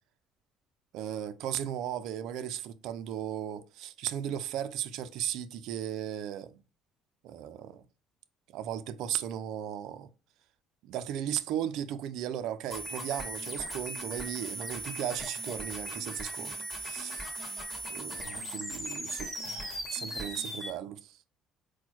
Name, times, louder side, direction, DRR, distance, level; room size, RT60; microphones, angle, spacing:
voice 1, 0.9-6.5 7.2-7.8 8.5-10.1 10.8-17.2 17.9-21.2, right 10 dB, 70° right, 0.4 m, -36 dB
sound 1, 12.7-20.7, right 1 dB, 5° left, 1.6 m, -38 dB
4.3 x 2.2 x 4.3 m
cardioid pair, 105°, 0 cm